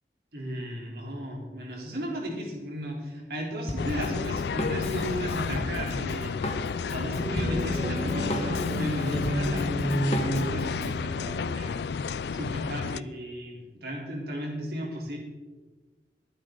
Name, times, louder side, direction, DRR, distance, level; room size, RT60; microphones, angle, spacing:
voice 1, 0.3-15.2, equal, 60° right, -1 dB, 3.5 m, -35 dB
Drum kit, 3.7-11.0, equal, 35° left, 1.5 m, -36 dB
sound 1, 3.8-13.0, left 5 dB, 70° left, 0.4 m, -31 dB
sound 2, 6.5-11.5, right 1 dB, 25° right, 4.5 m, -32 dB
21.5 x 8.6 x 3.9 m, 1.3 s
head